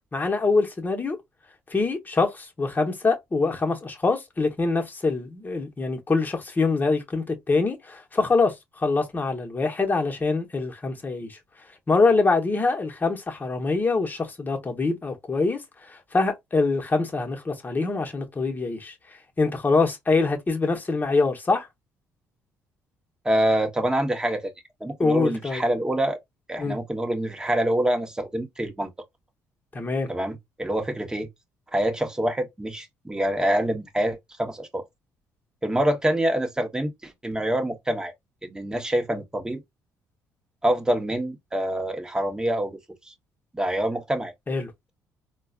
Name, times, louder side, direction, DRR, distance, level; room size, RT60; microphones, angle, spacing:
voice 1, 0.1-1.2 1.7-11.4 11.9-15.6 15.9-18.9 19.4-21.7 25.0-25.6 26.6-26.8 29.7-30.1 44.5-44.7, left 3 dB, 25° left, 1.1 m, -24 dB
voice 2, 23.2-24.5 24.8-26.2 26.5-28.9 30.1-31.3 31.7-34.8 35.6-38.1 38.4-39.6 40.6-42.8 43.0-43.1 43.5-44.3, right 1 dB, 10° right, 1.1 m, -26 dB
4.0 x 2.3 x 2.4 m
cardioid pair, 85°, 7 cm